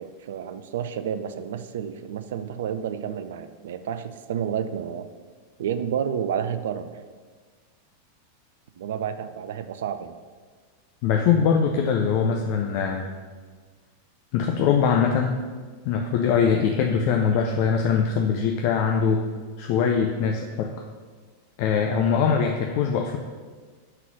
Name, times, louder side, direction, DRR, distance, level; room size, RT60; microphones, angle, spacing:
voice 1, 0.0-5.1 5.6-6.9 8.8-10.1, right 8 dB, 60° right, 11 dB, 0.4 m, -30 dB
voice 2, 11.0-13.1 14.3-15.4 15.8-19.2 19.6-20.7 21.6-23.2, left 6 dB, 45° left, 3 dB, 0.4 m, -22 dB
5.5 x 3.8 x 6.0 m, 1.5 s
figure-of-eight pair, 90°, 0 cm